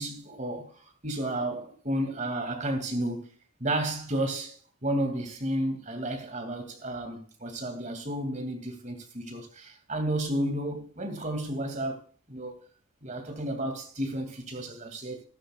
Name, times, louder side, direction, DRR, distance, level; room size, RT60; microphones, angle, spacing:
voice 1, 0.0-3.3 3.6-12.0 12.3-12.5 13.0-15.2, right 1 dB, 35° right, 2.5 m, -32 dB
13.5 x 13.0 x 2.4 m
head